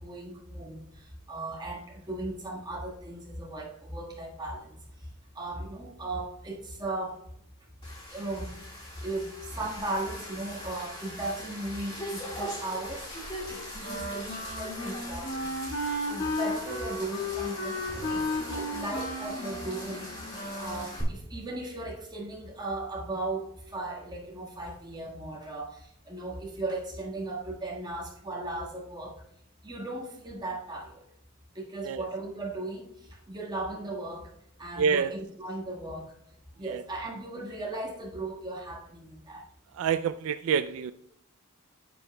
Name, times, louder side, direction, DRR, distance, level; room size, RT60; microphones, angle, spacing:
voice 1, 0.0-4.8 5.3-7.2 8.1-8.6 9.0-13.0 13.5-15.5 16.0-20.1 20.6-29.2 29.6-31.1 31.5-32.9 33.3-34.3 34.6-36.1 36.6-39.4, right 2 dB, 20° right, -2 dB, 1.5 m, -37 dB
sound 1, 7.8-21.0, equal, 25° left, 2.3 m, -41 dB
Wind instrument woodwind instrument, 13.8-20.9, left 1 dB, 50° left, 1.5 m, -34 dB
voice 2, 34.8-35.1 36.7-36.8 39.8-40.9, right 7 dB, 70° right, 12 dB, 0.3 m, -27 dB
10.0 x 8.0 x 2.2 m, 0.75 s
head